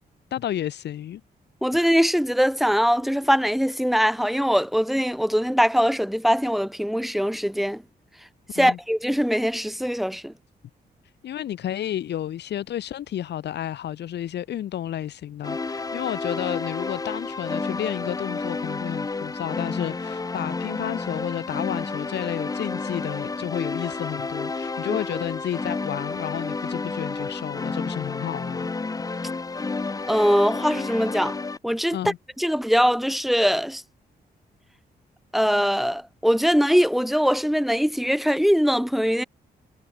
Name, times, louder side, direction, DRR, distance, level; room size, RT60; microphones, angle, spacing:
voice 1, 0.3-1.2 8.6-8.8 11.2-28.7 31.9-32.2, left 11 dB, 90° left, 3.5 m, -31 dB
voice 2, 1.6-7.8 8.5-10.3 24.9-25.0 30.1-31.4 31.6-32.0 32.4-33.8 35.3-39.2, equal, ahead, 0.7 m, -22 dB
sound 1, 15.4-31.6, left 3 dB, 20° left, 1.8 m, -31 dB
wide cardioid pair, 155°, 17 cm